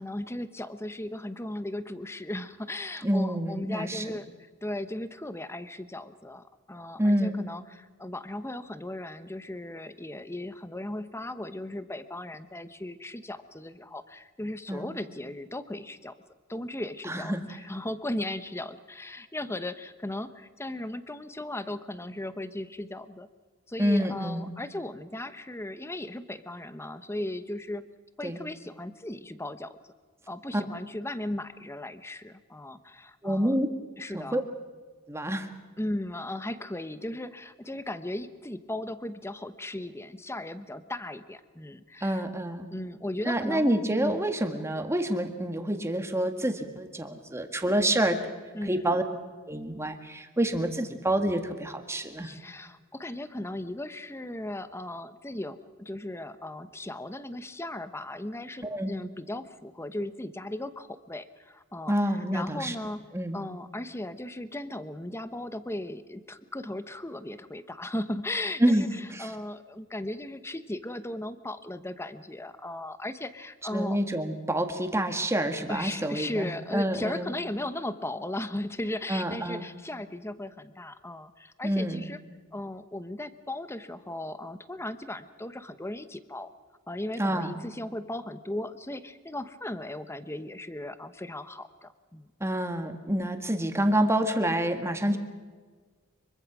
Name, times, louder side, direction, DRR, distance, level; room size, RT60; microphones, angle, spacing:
voice 1, 0.0-4.3 4.6-16.1 16.5-23.3 23.7-27.8 28.2-29.7 30.3-33.5 34.0-34.4 35.8-42.2 42.7-43.7 44.0-44.3 48.5-48.9 52.2-63.1 63.3-74.0 75.7-82.2 82.5-86.5 86.9-92.3, left 1 dB, 10° left, 12 dB, 1.0 m, -37 dB
voice 2, 3.0-4.0 7.0-7.4 14.7-14.9 17.1-17.4 23.8-24.5 28.2-28.4 33.2-33.7 34.1-34.4 35.1-35.5 42.0-42.7 43.2-48.2 48.7-49.0 49.5-52.3 58.6-58.9 61.9-62.8 63.1-63.4 68.6-69.3 73.7-77.3 79.1-79.7 81.6-82.1 87.2-87.5 92.4-95.2, right 1 dB, 15° right, 6 dB, 1.8 m, -27 dB
24.5 x 23.5 x 6.2 m, 1.5 s
head